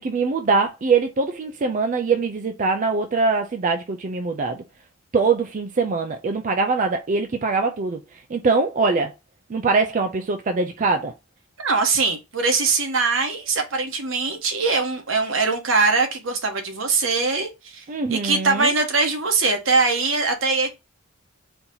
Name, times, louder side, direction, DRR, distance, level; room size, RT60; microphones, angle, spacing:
voice 1, 0.0-4.6 5.1-8.0 8.3-9.1 9.5-11.1 17.9-18.7, right 4 dB, 40° right, 0.4 m, -22 dB
voice 2, 11.6-17.8 18.1-20.7, right 4 dB, 75° right, 1.2 m, -22 dB
4.4 x 2.8 x 3.8 m
head